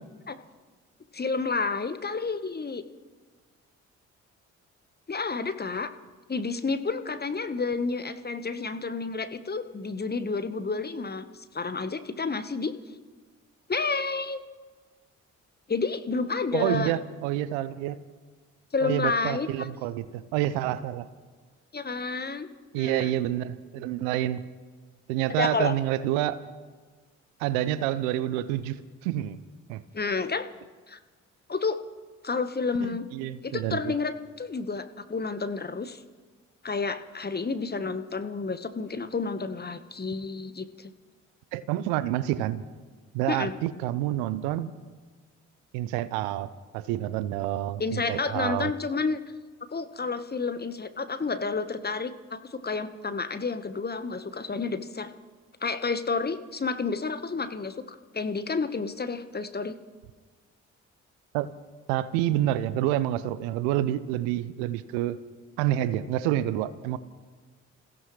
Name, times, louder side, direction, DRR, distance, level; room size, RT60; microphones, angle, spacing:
voice 1, 1.1-2.8 5.1-5.9 6.3-11.3 11.5-12.7 13.7-14.4 15.7-16.9 18.7-19.7 21.7-22.5 22.8-23.1 25.3-25.7 29.9-30.4 30.9-31.0 31.5-31.8 32.2-33.0 33.4-36.0 36.6-40.9 43.3-43.5 47.8-49.2 49.7-55.1 55.6-59.7, left 4 dB, 25° left, 10 dB, 1.3 m, -30 dB
voice 2, 16.5-18.0 18.8-21.1 22.7-24.4 25.1-26.4 27.4-28.8 29.0-29.4 29.7-29.8 32.8-33.9 41.5-42.6 43.1-44.7 45.7-46.5 46.7-48.7 61.3-61.5 61.9-65.2 65.6-67.0, right 13 dB, 75° right, 16 dB, 0.7 m, -28 dB
28.0 x 16.0 x 3.2 m, 1.4 s
hypercardioid pair, 40°, 36 cm